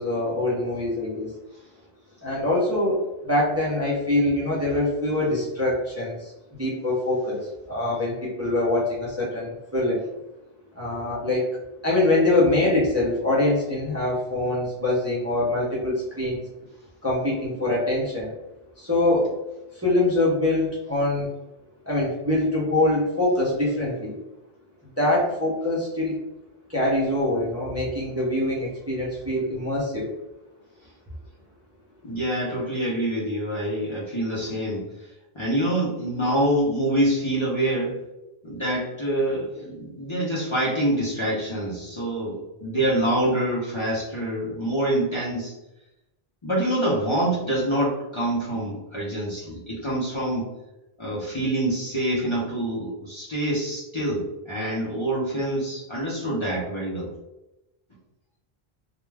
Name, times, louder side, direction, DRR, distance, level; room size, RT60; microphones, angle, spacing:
voice 1, 0.0-1.3 2.2-6.3 6.6-10.0 10.8-11.5 11.8-16.4 17.0-18.3 18.8-19.3 19.7-21.3 21.9-24.2 25.0-26.2 26.7-30.1, left 2 dB, 20° right, -6 dB, 0.6 m, -24 dB
voice 2, 32.0-34.8 35.3-38.0 38.4-45.5 46.4-50.5 51.0-57.1, right 1 dB, 35° left, -7 dB, 0.6 m, -26 dB
2.3 x 2.2 x 3.2 m, 0.97 s
omnidirectional pair, 1.0 m